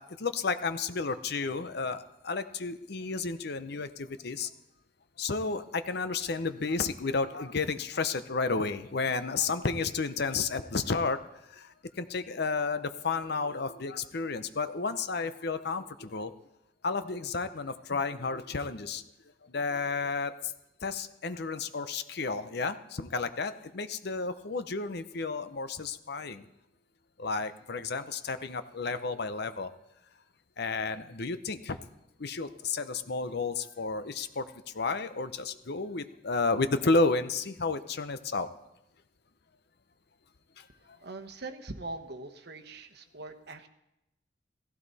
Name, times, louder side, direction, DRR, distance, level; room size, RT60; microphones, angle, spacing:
voice 1, 0.0-4.5 5.2-11.2 11.5-16.3 16.8-19.0 19.4-20.5 20.8-26.4 27.2-29.7 30.6-31.8 32.2-34.4 34.7-38.5 40.6-40.7, left 4 dB, 60° left, 11 dB, 0.8 m, -32 dB
voice 2, 41.0-43.7, right 2 dB, 60° right, 6 dB, 1.2 m, -42 dB
16.5 x 15.0 x 4.2 m, 0.89 s
head